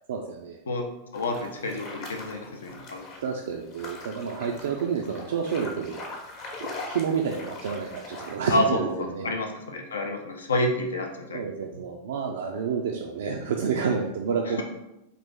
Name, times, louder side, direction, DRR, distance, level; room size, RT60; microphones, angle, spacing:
voice 1, 0.1-0.6 3.2-6.0 6.6-9.3 11.3-14.6, right 6 dB, 60° right, 1 dB, 0.3 m, -29 dB
voice 2, 1.1-3.1 8.5-11.4 14.5-14.6, left 1 dB, 70° left, 3 dB, 0.5 m, -28 dB
sound 1, 1.1-8.4, left 3 dB, 40° left, 0.8 m, -41 dB
4.1 x 2.6 x 3.5 m, 0.90 s
figure-of-eight pair, 90°, 0 cm